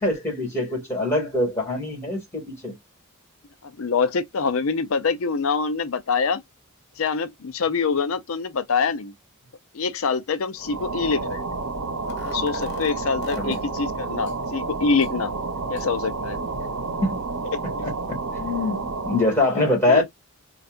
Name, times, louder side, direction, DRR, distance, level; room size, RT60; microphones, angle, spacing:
voice 1, 0.0-2.7 13.3-13.6 17.0-17.2 17.6-20.0, left 2 dB, 10° left, 2.1 m, -24 dB
voice 2, 3.6-6.4 7.0-9.1 9.7-11.6 12.2-15.3 15.7-16.4 17.5-17.6 19.9-20.0, left 5 dB, 70° left, 0.5 m, -25 dB
sound 1, 10.6-19.4, right 3 dB, 80° right, 0.8 m, -30 dB
sound 2, 12.0-13.6 14.3-14.4 15.0-15.1 15.8-15.9, left 3 dB, 55° left, 1.0 m, -36 dB
4.3 x 2.4 x 2.4 m
head